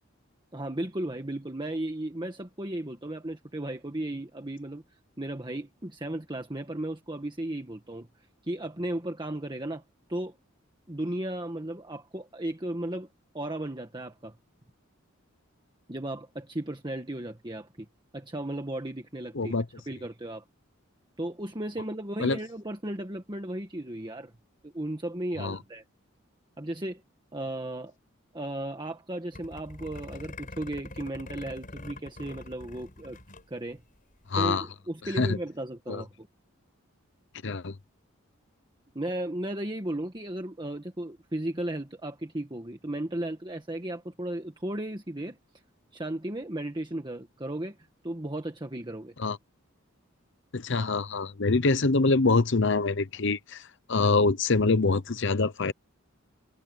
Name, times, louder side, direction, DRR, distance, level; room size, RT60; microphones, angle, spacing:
voice 1, 0.5-4.8 5.2-8.1 8.4-9.8 10.1-10.3 10.9-13.1 13.3-14.3 15.9-17.9 18.1-19.5 19.9-20.4 21.2-24.3 24.6-25.8 26.6-27.0 27.3-27.9 28.3-33.2 33.5-33.8 34.3-36.3 38.9-45.4 45.9-47.8 48.0-49.1, right 1 dB, 20° right, 1.6 m, -35 dB
voice 2, 19.3-19.6 22.2-22.4 25.4-25.6 34.3-34.7 35.2-35.4 35.9-36.0 37.4-37.7 49.2-49.4 50.5-53.6 53.9-55.7, left 3 dB, 65° left, 0.9 m, -25 dB
sound 1, 29.3-33.5 33.8-33.9 34.1-34.4, left 2 dB, 40° left, 6.4 m, -44 dB
head